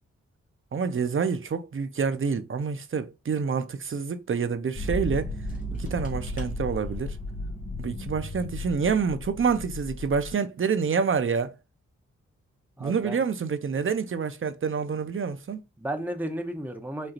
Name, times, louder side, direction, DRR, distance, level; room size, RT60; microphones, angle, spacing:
voice 1, 0.7-5.3 5.7-7.2 7.8-11.5 12.8-15.6, right 6 dB, 45° right, 0.7 m, -27 dB
sound 1, 4.8-10.3, left 1 dB, 25° left, 1.9 m, -34 dB
voice 2, 12.8-13.2 15.8-17.1, right 1 dB, 5° right, 1.0 m, -34 dB
5.1 x 2.7 x 2.5 m
supercardioid pair, 45°, 30 cm